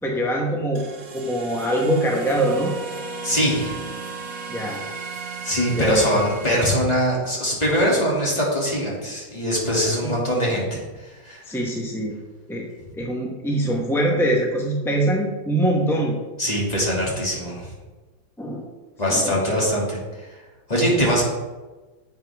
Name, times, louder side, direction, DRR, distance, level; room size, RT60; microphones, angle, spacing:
voice 1, 0.0-0.8 1.1-2.8 4.5-4.8 5.7-6.1 10.0-10.4 11.5-12.2 12.5-12.7 12.9-16.2 18.4-18.7 19.1-19.4, right 1 dB, ahead, -1 dB, 0.5 m, -23 dB
sound 1, 0.7-6.7, right 4 dB, 55° right, 1.3 m, -35 dB
voice 2, 3.2-3.8 5.4-11.4 16.4-17.7 19.0-20.3 20.7-21.2, equal, 20° left, -4 dB, 2.5 m, -22 dB
10.5 x 7.5 x 3.5 m, 1.2 s
omnidirectional pair, 2.1 m